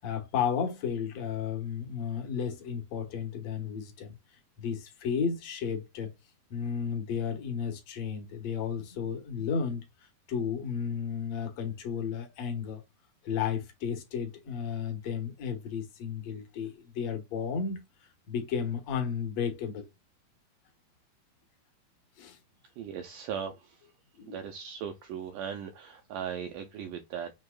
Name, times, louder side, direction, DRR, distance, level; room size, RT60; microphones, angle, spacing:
voice 1, 0.0-4.2 4.6-6.1 6.5-12.8 13.2-17.8 18.3-19.8 22.2-22.4 24.2-24.4, left 7 dB, 65° left, 1.7 m, -33 dB
voice 2, 22.8-23.8 24.3-27.3, right 8 dB, 85° right, 1.9 m, -38 dB
7.0 x 2.9 x 2.3 m
omnidirectional pair, 4.5 m